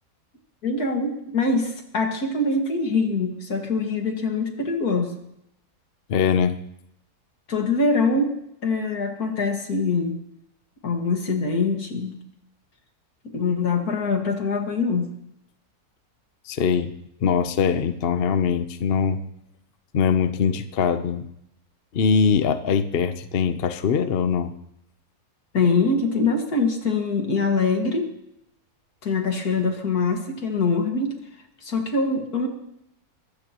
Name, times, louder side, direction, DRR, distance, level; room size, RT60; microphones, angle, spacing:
voice 1, 0.6-5.1 7.5-8.4 8.6-10.2 10.8-12.2 13.2-15.1 25.5-28.1 29.0-31.1 31.6-32.5, left 3 dB, 75° left, 3 dB, 2.4 m, -23 dB
voice 2, 6.1-6.6 16.5-16.9 17.2-19.2 19.9-21.3 21.9-24.5, left 6 dB, 50° left, 9 dB, 0.8 m, -22 dB
22.0 x 15.5 x 3.0 m, 0.79 s
omnidirectional pair, 1.6 m